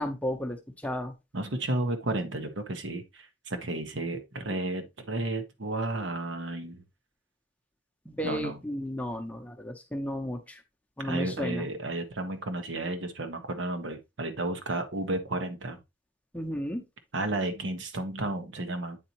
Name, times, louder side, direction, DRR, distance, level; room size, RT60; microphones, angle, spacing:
voice 1, 0.0-1.1 8.0-10.6 11.0-11.7 16.3-16.9, equal, 10° left, 0.7 m, -33 dB
voice 2, 1.3-6.8 8.2-8.6 11.0-15.8 17.1-19.0, right 2 dB, 80° right, 1.1 m, -32 dB
8.7 x 4.0 x 2.9 m
head